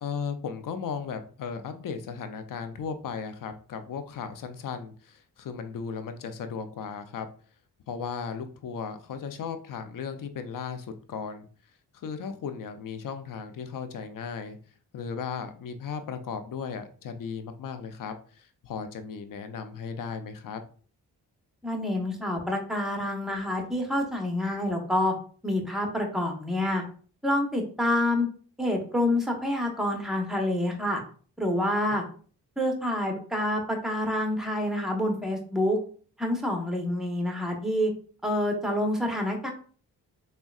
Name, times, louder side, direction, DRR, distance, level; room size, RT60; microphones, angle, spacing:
voice 1, 0.0-7.3 7.9-11.5 11.9-14.6 14.9-20.6 31.9-32.0, left 6 dB, 55° left, 9 dB, 0.5 m, -36 dB
voice 2, 21.6-25.1 25.4-26.8 27.2-28.3 28.6-31.0 31.4-32.0 32.6-35.8 36.2-37.9 38.2-39.5, left 1 dB, ahead, 2 dB, 0.9 m, -27 dB
3.5 x 2.2 x 2.3 m, 0.42 s
supercardioid pair, 50°, 40 cm